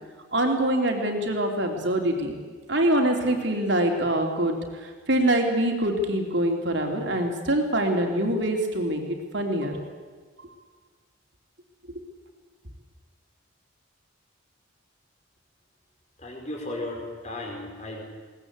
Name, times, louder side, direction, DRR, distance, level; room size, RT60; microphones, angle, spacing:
voice 1, 0.3-2.3 2.7-9.0 9.3-9.8, right 1 dB, 55° right, 3 dB, 3.4 m, -24 dB
voice 2, 16.2-18.0, left 1 dB, 35° left, 0 dB, 5.0 m, -35 dB
21.5 x 19.0 x 8.3 m, 1.5 s
head